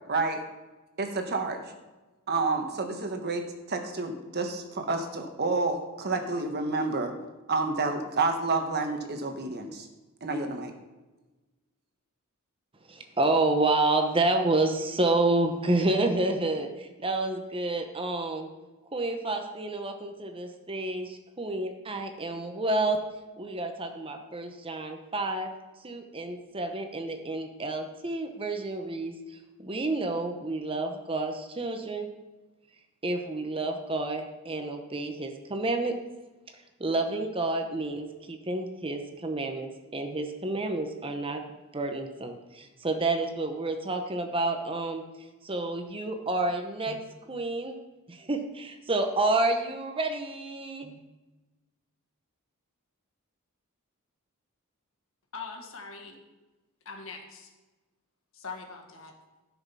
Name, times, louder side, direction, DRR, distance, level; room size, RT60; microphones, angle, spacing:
voice 1, 0.1-0.4 1.0-1.6 2.3-7.1 7.5-9.9 10.2-10.7, right 3 dB, 45° right, 5 dB, 1.3 m, -29 dB
voice 2, 12.9-18.5 18.9-23.0 23.4-25.5 25.8-32.1 33.0-36.0 36.5-41.4 41.7-47.8 48.1-51.0, right 2 dB, 25° right, 5 dB, 0.9 m, -29 dB
voice 3, 55.3-56.2 56.8-57.5 58.3-59.1, left 4 dB, 65° left, 4 dB, 1.7 m, -42 dB
12.5 x 6.2 x 5.7 m, 1.2 s
head